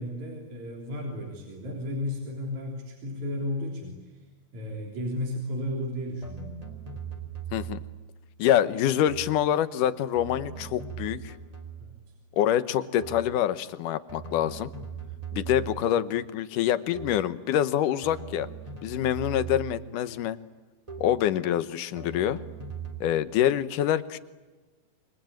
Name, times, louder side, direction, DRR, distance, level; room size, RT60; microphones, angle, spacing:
voice 1, 0.0-4.2 4.5-6.6 11.8-11.9, left 1 dB, 55° right, 0 dB, 4.9 m, -34 dB
sound 1, 6.2-8.0 9.1-9.5 10.1-12.0 13.0-13.4 14.1-16.0 16.9-17.4 18.0-20.0 20.9-21.3 22.0-23.1, right 7 dB, 10° right, 2.5 m, -39 dB
voice 2, 7.5-7.8 8.4-11.4 12.4-14.7 15.3-18.5 18.8-20.4 21.0-22.4 23.0-24.2, left 11 dB, 75° left, 14 dB, 2.5 m, -26 dB
27.5 x 23.5 x 9.0 m, 1.3 s
omnidirectional pair, 3.9 m